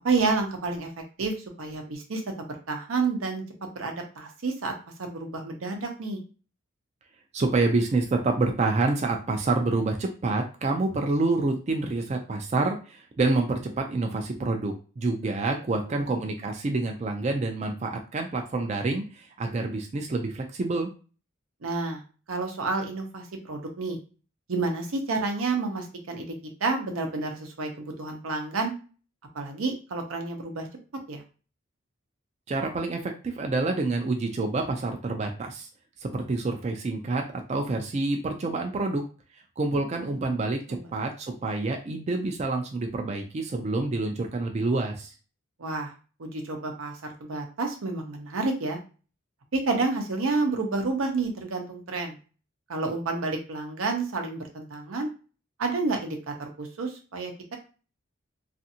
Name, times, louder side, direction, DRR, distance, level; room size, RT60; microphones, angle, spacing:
voice 1, 0.0-0.9 1.2-3.4 3.7-4.7 5.0-6.2 15.9-16.0 21.6-22.0 22.3-24.0 24.5-26.3 26.6-28.7 29.3-30.7 31.1-31.2 39.8-40.2 40.7-40.9 45.6-45.9 46.2-48.8 49.5-52.2 52.7-55.1 55.6-57.6, right 3 dB, 90° right, 4 dB, 0.7 m, -30 dB
voice 2, 7.3-20.9 32.5-35.7 36.0-39.0 39.6-45.1, right 3 dB, 35° right, 3 dB, 0.3 m, -27 dB
2.5 x 2.5 x 2.7 m, 0.36 s
head